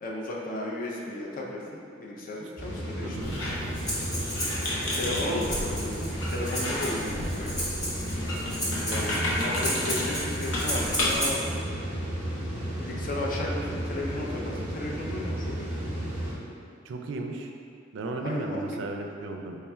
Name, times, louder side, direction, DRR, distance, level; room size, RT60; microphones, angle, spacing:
voice 1, 0.0-3.3 4.9-7.6 8.8-11.6 12.8-15.7 18.2-18.6, left 1 dB, 45° left, -3 dB, 0.5 m, -34 dB
sound 1, 2.6-16.3, equal, 15° right, 0.9 m, -34 dB
voice 2, 3.0-3.3 5.1-5.5 16.8-17.5 17.9-19.6, right 2 dB, 70° right, 3 dB, 0.4 m, -35 dB
Squeak, 3.2-11.3, left 1 dB, 85° left, 0.8 m, -33 dB
Breathing, 3.7-11.5, equal, 20° left, 0.8 m, -34 dB
3.3 x 2.3 x 4.3 m, 2.4 s
head